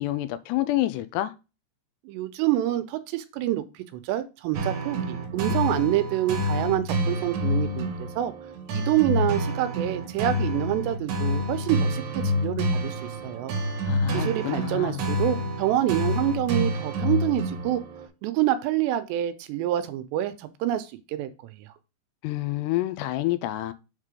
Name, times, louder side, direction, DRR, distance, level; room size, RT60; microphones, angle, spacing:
voice 1, 0.0-1.3 13.9-15.0 22.2-23.7, left 15 dB, 85° left, 2.7 m, -28 dB
voice 2, 2.1-8.3 8.7-13.6 14.1-17.8 18.2-21.7, right 13 dB, 90° right, 2.9 m, -27 dB
sound 1, 4.5-18.1, equal, 70° right, 2.0 m, -28 dB
7.4 x 3.7 x 4.9 m
omnidirectional pair, 5.0 m